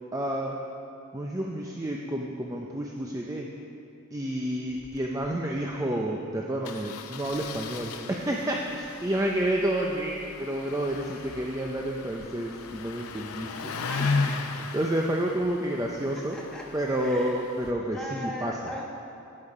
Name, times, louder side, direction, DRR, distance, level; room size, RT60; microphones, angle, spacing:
voice 1, 0.1-0.6 1.1-3.5 4.1-14.1 14.7-16.4 16.7-18.7, right 1 dB, 15° right, 0 dB, 0.5 m, -30 dB
Engine starting, 4.7-5.0 5.2-5.3 5.6-5.7 6.6-17.7, left 4 dB, 80° left, 0.7 m, -36 dB
voice 2, 13.9-14.5 16.1-16.7 17.0-17.4 17.9-18.8, left 1 dB, 5° left, -4 dB, 1.4 m, -38 dB
12.0 x 8.8 x 4.8 m, 2.7 s
head